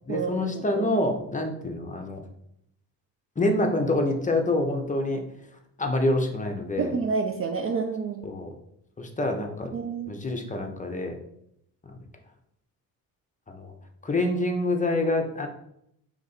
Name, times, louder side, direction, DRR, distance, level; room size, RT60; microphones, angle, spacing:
voice 1, 0.1-2.2 3.4-5.2 5.8-6.9 8.2-8.5 9.0-9.7 10.1-11.2 11.8-12.0 13.5-13.7 14.0-15.5, left 1 dB, 20° left, 3 dB, 0.7 m, -26 dB
voice 2, 6.8-8.3 9.7-10.1, right 5 dB, 35° right, 4 dB, 0.4 m, -28 dB
3.0 x 2.5 x 4.1 m, 0.75 s
hypercardioid pair, 55°, 41 cm